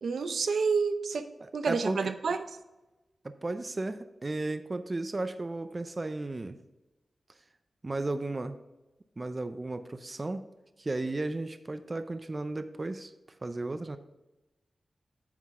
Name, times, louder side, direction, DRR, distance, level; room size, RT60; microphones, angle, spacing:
voice 1, 0.0-1.3 1.5-2.5, right 5 dB, 80° right, 9 dB, 0.6 m, -29 dB
voice 2, 1.4-2.1 3.2-6.6 7.8-8.6 9.2-10.5 10.8-13.1 13.4-14.0, right 2 dB, 30° right, 10 dB, 0.5 m, -34 dB
9.3 x 6.0 x 3.6 m, 1.0 s
wide cardioid pair, 105°, 0 cm